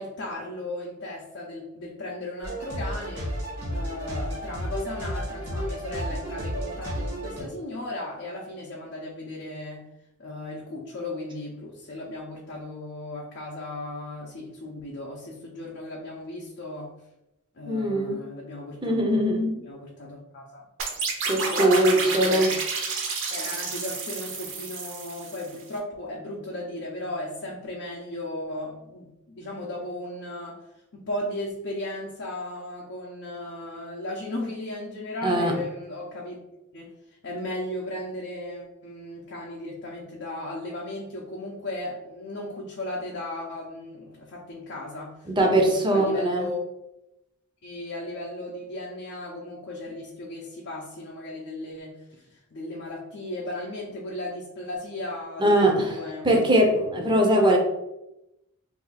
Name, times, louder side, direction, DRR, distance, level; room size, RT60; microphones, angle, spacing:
voice 1, 0.0-3.3 3.7-9.9 10.2-16.9 17.5-19.2 19.7-20.6 21.5-22.5 23.3-30.6 30.9-36.4 36.7-36.9 37.2-46.6 47.6-56.4 56.9-57.6, left 1 dB, 55° left, -4 dB, 0.6 m, -36 dB
sound 1, 2.4-7.4, equal, 90° right, 1.3 m, -32 dB
voice 2, 17.7-18.2 18.8-19.6 21.3-22.5 35.2-35.5 45.3-46.5 55.4-56.0 56.2-57.6, right 1 dB, 20° right, 1 dB, 0.5 m, -21 dB
sound 2, 20.8-25.6, right 4 dB, 60° right, 0.7 m, -30 dB
2.6 x 2.3 x 4.0 m, 0.90 s
head